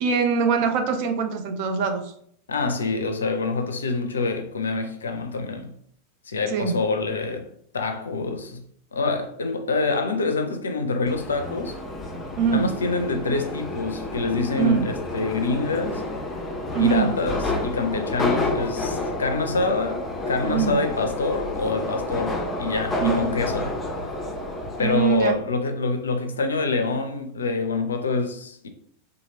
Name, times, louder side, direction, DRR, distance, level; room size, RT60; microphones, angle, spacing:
voice 1, 0.0-2.1 6.5-6.8 12.4-12.7 14.6-14.9 16.7-17.1 20.4-20.8 23.0-23.2 24.8-25.3, right 6 dB, 45° right, 0.5 m, -23 dB
voice 2, 2.5-5.7 6.3-7.5 7.7-8.6 8.9-11.8 12.5-16.0 16.8-23.7 24.8-28.7, left 3 dB, 70° left, 0.4 m, -26 dB
Subway metro underground, 11.1-25.3, left 2 dB, 15° left, 0.6 m, -30 dB
2.8 x 2.5 x 2.8 m
figure-of-eight pair, 90°, 0 cm